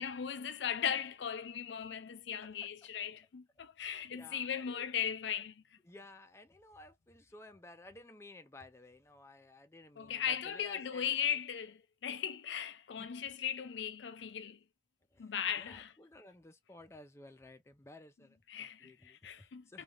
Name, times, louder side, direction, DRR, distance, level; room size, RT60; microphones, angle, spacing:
voice 1, 0.0-5.5 10.0-14.6 15.2-15.9 18.5-19.8, left 8 dB, 85° left, 0.4 m, -38 dB
voice 2, 2.4-2.9 4.1-4.9 5.8-11.4 12.9-13.1 15.1-19.8, left 2 dB, 15° left, 0.4 m, -55 dB
3.2 x 2.2 x 2.5 m
head